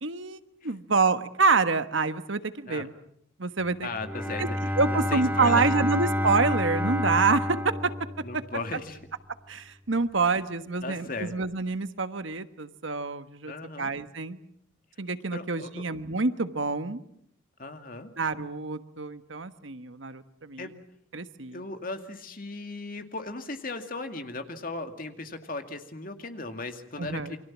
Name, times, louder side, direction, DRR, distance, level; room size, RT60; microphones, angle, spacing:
voice 1, 0.0-2.9 3.4-3.9 4.4-7.6 9.5-13.5 13.8-14.4 15.0-17.0 18.2-20.7 21.1-21.6 27.0-27.4, right 4 dB, 70° right, 11 dB, 1.3 m, -27 dB
voice 2, 3.8-5.8 8.2-9.0 10.8-11.3 13.5-13.9 15.3-15.8 17.6-18.1 20.6-20.7 21.5-27.4, left 3 dB, 45° left, 7 dB, 2.2 m, -37 dB
Bowed string instrument, 3.9-8.8, left 1 dB, 10° right, 1.7 m, -29 dB
29.0 x 23.5 x 7.4 m, 0.69 s
head